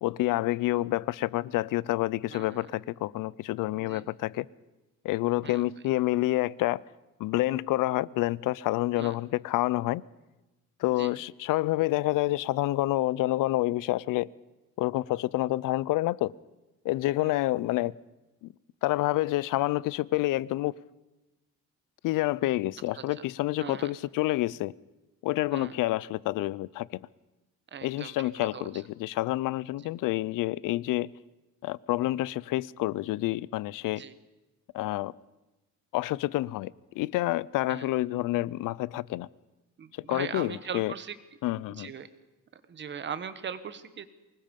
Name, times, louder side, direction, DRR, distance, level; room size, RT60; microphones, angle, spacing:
voice 1, 0.0-4.5 5.0-6.8 7.2-10.0 10.8-14.3 14.8-16.3 16.8-17.9 18.4-18.5 18.8-20.7 22.0-24.7 25.2-27.0 27.8-31.1 31.6-34.0 34.7-35.1 35.9-39.3 40.0-40.9 41.4-41.9, left 17 dB, 85° left, 0.6 m, -28 dB
voice 2, 2.3-2.7 3.8-4.1 5.4-5.6 9.0-9.2 11.0-11.1 17.2-17.3 23.0-23.3 23.6-23.9 25.5-25.8 27.7-28.7 34.0-34.1 37.7-37.9 39.8-41.2 41.8-42.1 42.5-44.1, right 7 dB, 35° right, 1.2 m, -40 dB
24.0 x 20.5 x 5.3 m
cardioid pair, 150°, 32 cm